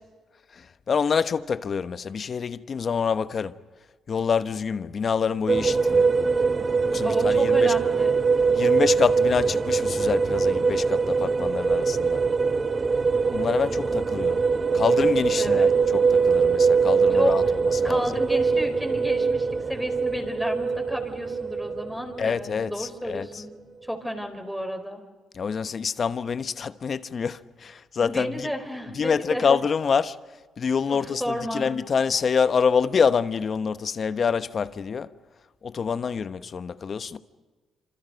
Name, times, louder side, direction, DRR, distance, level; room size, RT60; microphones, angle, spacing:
voice 1, 0.5-3.6 4.1-6.1 6.8-7.7 8.6-12.2 13.3-14.4 14.7-18.1 22.2-23.4 25.3-28.5 28.9-30.2 30.6-35.1 35.6-37.2, left 6 dB, 45° left, 1.0 m, -26 dB
sound 1, 5.5-22.7, right 5 dB, 30° right, 0.7 m, -22 dB
voice 2, 7.0-8.1 15.4-15.7 17.1-17.4 17.8-23.5 23.9-25.0 27.9-29.5 30.9-31.7, equal, ahead, 4.5 m, -32 dB
28.0 x 27.0 x 5.3 m
cardioid pair, 90°, 0 cm